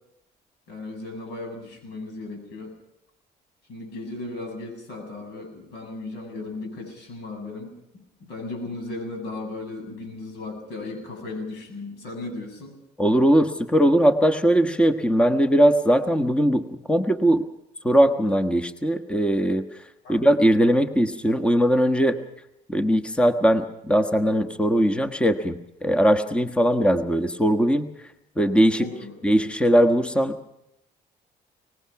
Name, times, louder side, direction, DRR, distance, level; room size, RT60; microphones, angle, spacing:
voice 1, 0.7-2.7 3.7-7.7 8.3-12.8 20.0-20.2 28.8-29.1, left 2 dB, 85° left, 5 dB, 7.8 m, -36 dB
voice 2, 13.0-17.4 17.8-19.7 20.1-22.2 22.7-27.9 28.4-28.8 29.2-30.3, equal, 5° left, 8 dB, 1.3 m, -20 dB
24.0 x 20.0 x 5.9 m, 0.82 s
cardioid pair, 110°, 17 cm